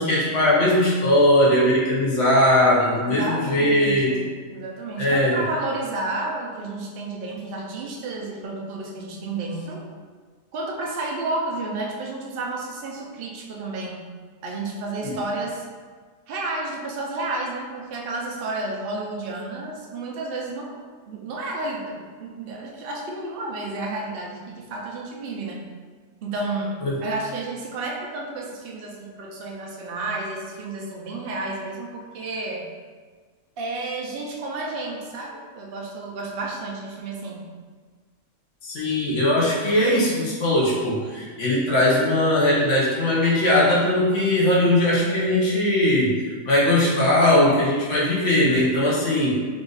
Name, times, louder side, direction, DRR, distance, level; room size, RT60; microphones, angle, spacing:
voice 1, 0.0-4.1 5.0-5.3 15.0-15.1 26.8-26.9 38.6-46.1 46.4-49.3, left 1 dB, 65° left, -6 dB, 1.2 m, -19 dB
voice 2, 3.0-9.8 10.5-14.1 14.4-15.6 16.3-20.8 21.1-25.6 26.2-32.7 33.6-37.4, right 2 dB, 55° right, -2 dB, 0.7 m, -31 dB
3.8 x 2.4 x 3.8 m, 1.5 s
omnidirectional pair, 1.4 m